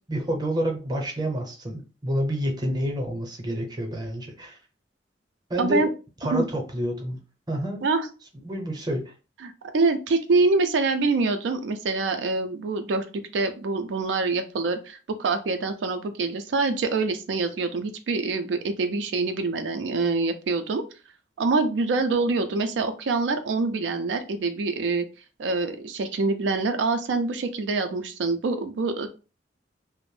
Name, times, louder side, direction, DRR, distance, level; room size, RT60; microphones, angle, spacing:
voice 1, 0.1-4.6 5.5-5.9 6.2-7.2 7.5-7.8 8.4-9.1, equal, 25° right, 3 dB, 0.6 m, -28 dB
voice 2, 5.6-5.9 6.3-6.5 7.8-8.1 9.4-13.1 13.3-20.8 21.4-25.1 25.4-29.1, right 3 dB, 90° right, 8 dB, 0.4 m, -25 dB
2.5 x 2.0 x 3.1 m, 0.34 s
head